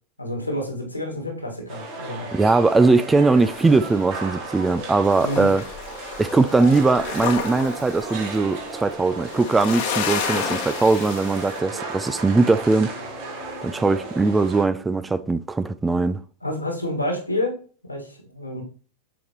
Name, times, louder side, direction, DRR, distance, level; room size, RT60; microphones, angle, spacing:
voice 1, 0.2-2.3 5.2-5.5 16.4-17.6 17.8-18.6, left 1 dB, 85° left, 1.9 m, -28 dB
sound 1, 1.7-14.6, right 2 dB, 45° right, 1.8 m, -35 dB
voice 2, 2.3-5.6 6.2-13.0 13.6-16.2, right 3 dB, 10° right, 0.3 m, -20 dB
sound 2, 3.4-4.8 5.1-11.6, left 7 dB, 50° left, 1.1 m, -31 dB
Piano, 7.4-14.3, right 3 dB, 30° right, 2.8 m, -43 dB
6.9 x 5.0 x 3.1 m
figure-of-eight pair, 90°, 0 cm